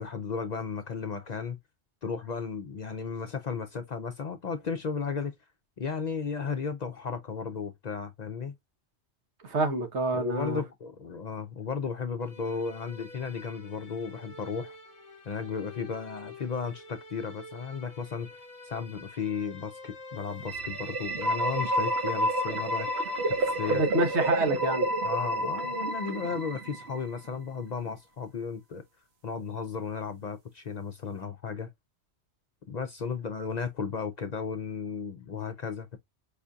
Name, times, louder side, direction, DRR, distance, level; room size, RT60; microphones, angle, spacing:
voice 1, 0.0-1.6 2.0-5.3 5.8-8.5 10.1-14.8 15.3-23.8 25.0-28.8 29.2-31.7 32.7-36.0, left 5 dB, 55° left, 0.5 m, -35 dB
voice 2, 9.4-10.6 23.7-24.9, right 2 dB, 85° right, 1.4 m, -27 dB
sound 1, 12.2-24.3, left 2 dB, 35° left, 1.0 m, -48 dB
sound 2, 20.4-27.2, right 1 dB, 70° right, 1.2 m, -29 dB
4.9 x 2.6 x 2.3 m
omnidirectional pair, 1.1 m